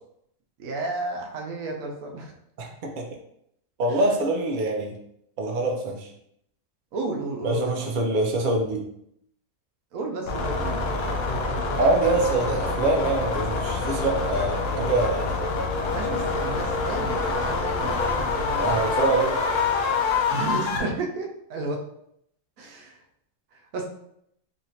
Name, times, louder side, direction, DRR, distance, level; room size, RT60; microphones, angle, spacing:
voice 1, 0.6-2.3 6.9-7.9 9.9-10.9 15.9-18.9 20.3-21.8 22.6-23.0 23.7-23.9, right 2 dB, 80° right, 1 dB, 1.1 m, -32 dB
voice 2, 2.6-3.1 3.8-5.0 5.4-6.1 7.4-8.9 11.7-15.3 18.6-19.4, right 2 dB, 60° right, 1 dB, 0.5 m, -24 dB
sound 1, 10.3-20.8, left 4 dB, 60° left, 0.7 m, -26 dB
3.1 x 2.7 x 2.7 m, 0.73 s
omnidirectional pair, 1.4 m